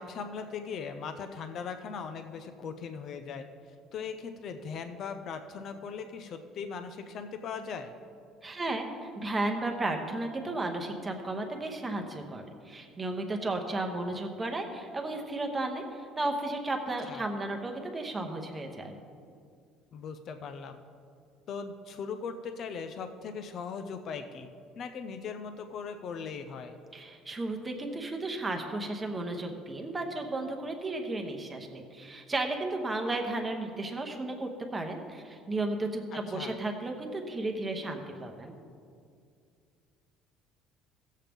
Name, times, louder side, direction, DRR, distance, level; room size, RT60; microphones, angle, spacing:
voice 1, 0.0-3.5 3.9-7.9 17.1-17.2 19.9-20.8 21.5-24.5 24.8-26.8 36.1-36.5, left 5 dB, 45° left, 8 dB, 0.5 m, -39 dB
voice 2, 8.4-19.0 26.9-38.6, right 2 dB, 15° right, 3 dB, 1.0 m, -34 dB
16.0 x 7.4 x 3.5 m, 2.3 s
cardioid pair, 150°, 0 cm